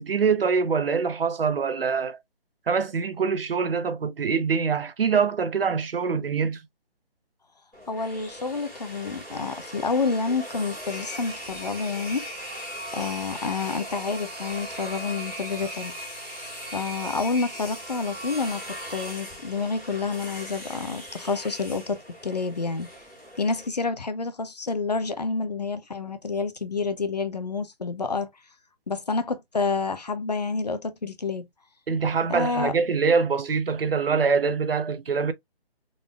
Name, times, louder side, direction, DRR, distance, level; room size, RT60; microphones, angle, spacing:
voice 1, 0.0-2.2 2.7-6.6 31.9-35.3, right 5 dB, 65° right, 0.7 m, -24 dB
sound 1, 7.7-23.7, equal, ahead, 0.9 m, -38 dB
voice 2, 7.9-12.3 12.9-16.0 16.7-22.9 23.4-28.3 28.9-31.5 32.3-32.7, left 4 dB, 40° left, 0.6 m, -29 dB
3.9 x 3.4 x 2.2 m
hypercardioid pair, 175°, 31 cm